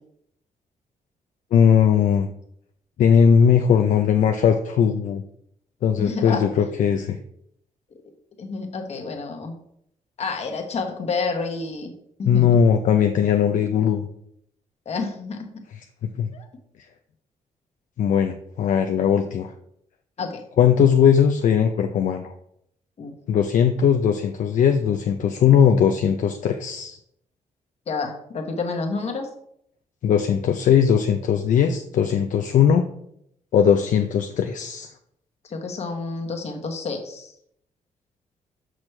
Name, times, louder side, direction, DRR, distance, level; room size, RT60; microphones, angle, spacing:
voice 1, 1.5-2.3 3.0-5.2 5.8-7.2 12.2-14.1 15.7-15.8 16.2-16.3 18.0-19.5 20.6-22.3 23.3-27.0 30.0-32.9 33.5-34.9, left 7 dB, 70° left, 5 dB, 0.5 m, -19 dB
voice 2, 6.0-6.5 8.4-9.5 10.2-11.9 12.2-12.6 14.9-15.6 20.2-20.4 23.0-23.1 27.9-29.3 35.5-37.3, left 4 dB, 50° left, 3 dB, 1.2 m, -29 dB
6.2 x 6.0 x 3.2 m, 0.72 s
cardioid pair, 105°, 14 cm